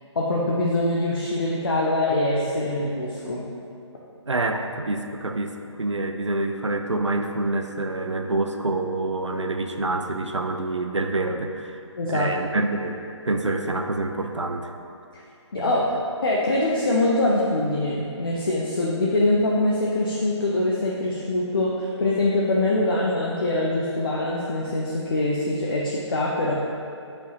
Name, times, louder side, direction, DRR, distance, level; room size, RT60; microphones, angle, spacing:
voice 1, 0.1-3.4 12.0-12.3 15.5-15.8 16.2-26.5, left 2 dB, 50° left, -4 dB, 1.0 m, -23 dB
voice 2, 4.3-11.8 12.1-14.7, right 2 dB, 75° right, 5 dB, 0.8 m, -27 dB
13.0 x 5.5 x 3.0 m, 2.6 s
figure-of-eight pair, 150°, 15 cm